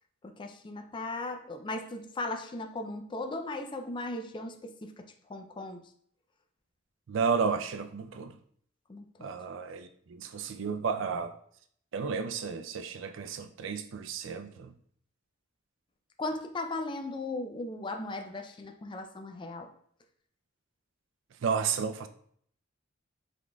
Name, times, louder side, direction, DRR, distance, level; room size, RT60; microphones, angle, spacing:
voice 1, 0.2-5.8 8.9-9.3 16.2-19.7, left 2 dB, 25° left, 0.4 m, -37 dB
voice 2, 7.1-8.3 9.2-11.4 11.9-14.7 21.4-22.1, right 5 dB, 70° right, 0.4 m, -32 dB
5.1 x 3.7 x 2.3 m
head